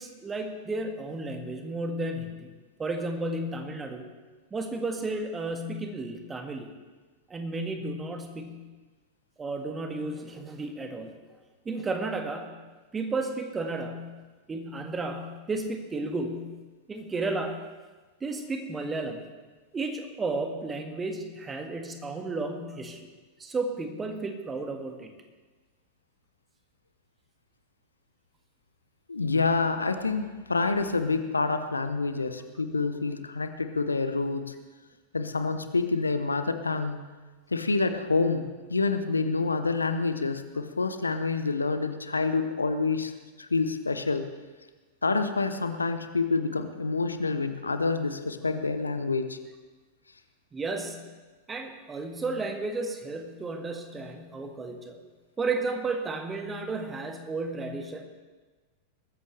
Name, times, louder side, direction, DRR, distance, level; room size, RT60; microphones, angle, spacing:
voice 1, 0.0-2.5 2.8-4.0 4.5-6.7 7.3-8.6 9.4-11.1 11.6-12.5 12.9-14.1 14.5-16.5 16.9-17.6 18.2-19.2 19.7-23.1 23.4-25.1 50.5-51.0 51.5-55.0 55.4-58.0, right 3 dB, 15° right, 5 dB, 1.7 m, -33 dB
voice 2, 29.1-34.5 35.1-37.0 37.5-43.1 43.4-44.2 45.0-49.4, left 4 dB, 80° left, 10 dB, 0.8 m, -27 dB
21.0 x 14.0 x 3.3 m, 1.3 s
figure-of-eight pair, 90°, 0 cm